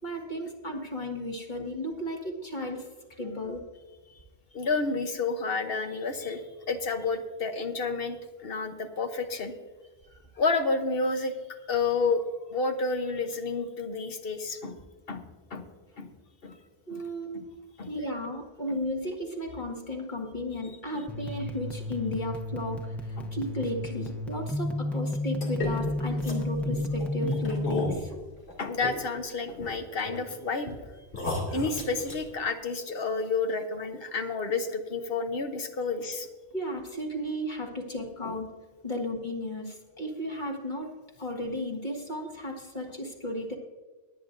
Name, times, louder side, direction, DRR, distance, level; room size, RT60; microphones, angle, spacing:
voice 1, 0.0-2.9 3.2-3.6 8.5-8.7 10.1-10.4 14.6-14.7 16.9-28.1 36.5-38.5 38.8-43.5, left 1 dB, 45° left, 1 dB, 1.9 m, -34 dB
voice 2, 4.5-6.4 6.7-9.5 10.4-11.3 11.7-12.2 12.5-14.7 15.1-15.2 15.5-15.6 16.0-16.1 16.4-16.5 16.9-17.0 17.3-17.4 17.8-17.9 20.9-21.0 23.2-23.3 28.6-30.8 31.5-36.3 38.2-38.3, left 4 dB, 60° left, 6 dB, 1.2 m, -30 dB
sound 1, 21.1-27.9, left 1 dB, ahead, 0.8 m, -32 dB
sound 2, 25.4-29.2 29.5-30.3 30.7-30.8 31.1-32.3, left 1 dB, 90° left, 2.8 m, -34 dB
22.0 x 8.9 x 2.6 m, 1.4 s
omnidirectional pair, 1.1 m